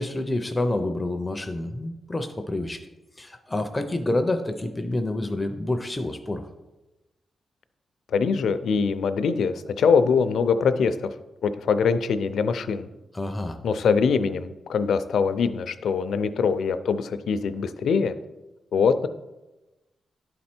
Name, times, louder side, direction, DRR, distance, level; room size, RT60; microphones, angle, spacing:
voice 1, 0.0-2.8 3.2-6.5 13.1-13.6, left 2 dB, 15° left, 7 dB, 0.4 m, -28 dB
voice 2, 8.1-11.1 11.4-12.9 13.6-18.1 18.7-19.1, left 5 dB, 75° left, 11 dB, 0.4 m, -23 dB
11.0 x 4.3 x 4.4 m, 1.1 s
wide cardioid pair, 175°, 0 cm